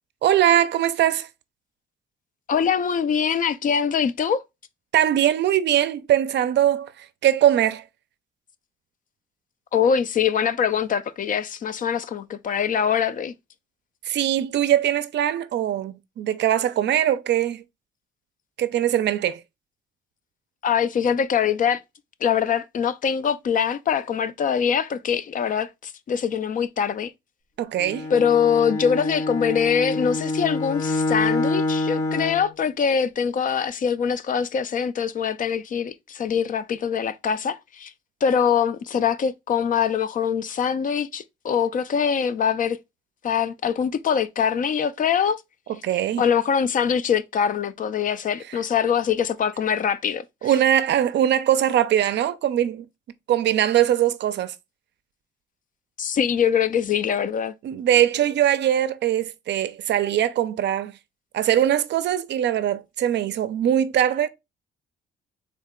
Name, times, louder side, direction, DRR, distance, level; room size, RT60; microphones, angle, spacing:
voice 1, 0.2-1.3 4.9-7.8 14.1-17.6 18.6-19.4 27.6-28.1 45.8-46.2 50.4-52.8 53.3-54.5 57.6-60.9 61.3-64.3, right 11 dB, 65° right, 0.4 m, -21 dB
voice 2, 2.5-4.4 9.7-13.3 20.6-21.8 22.2-27.1 28.1-37.9 38.2-42.8 43.2-45.4 46.2-50.5 56.0-57.5, left 7 dB, 45° left, 0.4 m, -23 dB
Bowed string instrument, 27.8-32.5, left 2 dB, 85° left, 0.9 m, -26 dB
3.6 x 2.1 x 3.6 m
cardioid pair, 90°, 20 cm